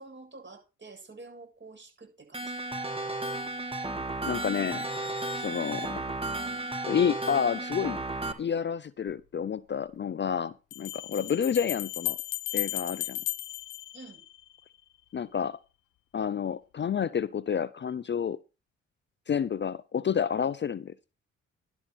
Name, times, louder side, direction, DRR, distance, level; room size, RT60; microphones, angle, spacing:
voice 1, 0.0-2.5 11.1-11.4 13.9-14.2, right 3 dB, 35° right, 7.8 m, -48 dB
sound 1, 2.3-8.3, right 2 dB, 20° right, 2.2 m, -33 dB
voice 2, 4.2-4.8 5.4-6.0 6.9-8.0 8.4-12.2 12.5-13.2 15.1-15.6 16.1-18.4 19.3-20.9, left 7 dB, 35° left, 0.5 m, -29 dB
Bell, 9.1-9.2 10.7-14.6, left 16 dB, 80° left, 0.6 m, -35 dB
11.5 x 5.8 x 6.2 m
supercardioid pair, 50°, 31 cm